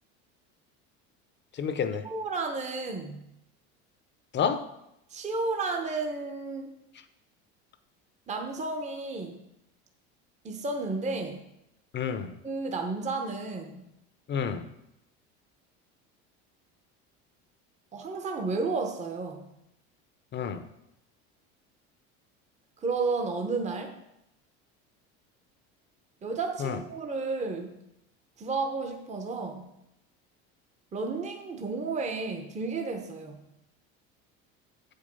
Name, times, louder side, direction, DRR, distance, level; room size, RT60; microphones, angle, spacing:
voice 1, 1.5-2.0 4.3-4.6 11.9-12.3 14.3-14.7 20.3-20.6 26.6-26.8, left 7 dB, 35° left, 10 dB, 0.8 m, -29 dB
voice 2, 2.0-3.3 5.1-6.7 8.3-9.4 10.4-11.4 12.4-13.9 17.9-19.5 22.8-24.0 26.2-27.8 28.4-29.7 30.9-33.4, right 3 dB, 20° right, 4 dB, 0.9 m, -32 dB
7.9 x 5.4 x 5.4 m, 0.84 s
supercardioid pair, 110°, 32 cm